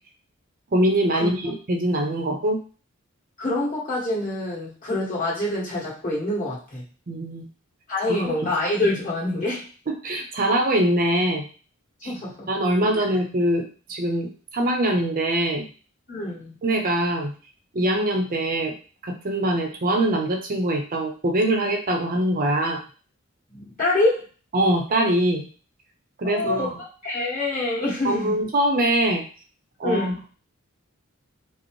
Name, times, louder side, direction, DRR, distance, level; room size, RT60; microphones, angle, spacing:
voice 1, 0.7-2.6 7.1-7.4 8.1-8.4 9.9-11.5 12.0-12.1 12.5-13.6 13.9-15.7 16.6-17.3 17.7-18.7 19.0-22.8 24.5-25.5 26.2-26.7 28.0-29.2 29.8-30.2, right 1 dB, 40° right, 2 dB, 0.6 m, -23 dB
voice 2, 3.4-6.8 7.9-9.7 12.0-12.5 16.1-16.5 23.5-24.2 26.2-26.7 27.0-28.4 29.8-30.2, left 2 dB, 40° left, -7 dB, 1.9 m, -26 dB
5.0 x 2.0 x 3.1 m, 0.38 s
head